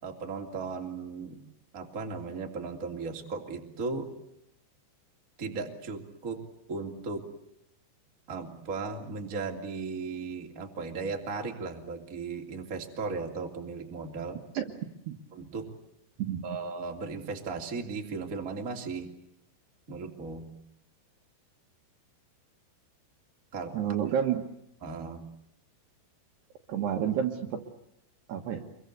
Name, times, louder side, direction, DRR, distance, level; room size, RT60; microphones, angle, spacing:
voice 1, 0.0-1.4 1.7-4.1 5.4-6.4 6.7-7.2 8.3-14.4 15.3-15.7 16.4-19.1 19.9-20.5 23.5-23.8 24.0-24.1 24.8-25.2, right 4 dB, 25° right, 2 dB, 2.3 m, -36 dB
voice 2, 23.7-24.4 26.7-27.5 28.3-28.7, right 9 dB, 65° right, 4 dB, 3.1 m, -29 dB
26.5 x 23.5 x 8.3 m, 0.78 s
omnidirectional pair, 5.9 m